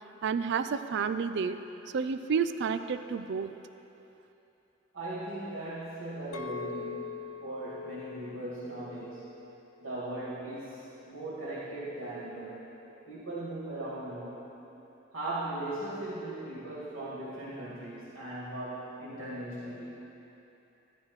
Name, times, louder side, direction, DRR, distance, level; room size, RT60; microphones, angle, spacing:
voice 1, 0.2-1.6 1.9-3.5, right 6 dB, 60° right, 11 dB, 0.4 m, -30 dB
voice 2, 4.9-9.3 9.8-12.7 13.1-14.5 15.1-20.0, right 1 dB, 85° right, -8 dB, 2.1 m, -38 dB
Chink clink, 6.3-10.6 11.1-11.5, left 4 dB, 85° left, 0.5 m, -43 dB
12.5 x 11.5 x 3.2 m, 3.0 s
head